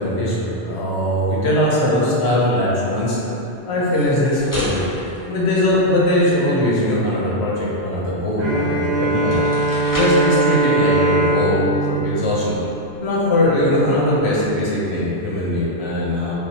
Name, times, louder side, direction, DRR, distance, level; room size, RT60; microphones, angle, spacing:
voice 1, 0.0-3.2 3.7-4.8 5.3-9.4 9.9-12.6 13.0-16.3, left 1 dB, 80° left, -6 dB, 1.0 m, -20 dB
sound 1, 3.8-6.2 8.6-8.7 9.1-10.3, equal, 30° left, 0.4 m, -31 dB
Bowed string instrument, 8.4-13.1, right 2 dB, 85° right, 1.0 m, -20 dB
3.2 x 2.3 x 2.7 m, 3.0 s
omnidirectional pair, 1.1 m